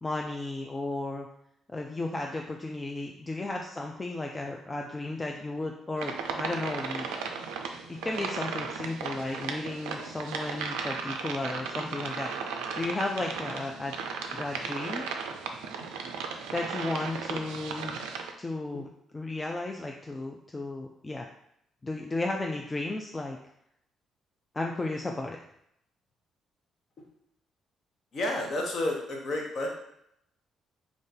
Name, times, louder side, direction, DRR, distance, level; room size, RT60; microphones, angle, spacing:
voice 1, 0.0-1.3 1.7-7.1 7.9-13.9 14.3-15.0 16.5-18.0 18.4-18.9 19.1-21.3 21.8-23.4 24.5-25.4, left 2 dB, 25° left, 1 dB, 0.4 m, -34 dB
sound 1, 6.0-18.3, right 5 dB, 75° right, 0.3 m, -36 dB
voice 2, 28.1-29.7, left 1 dB, 50° left, 0 dB, 1.1 m, -30 dB
3.6 x 2.6 x 3.8 m, 0.73 s
hypercardioid pair, 45°, 0 cm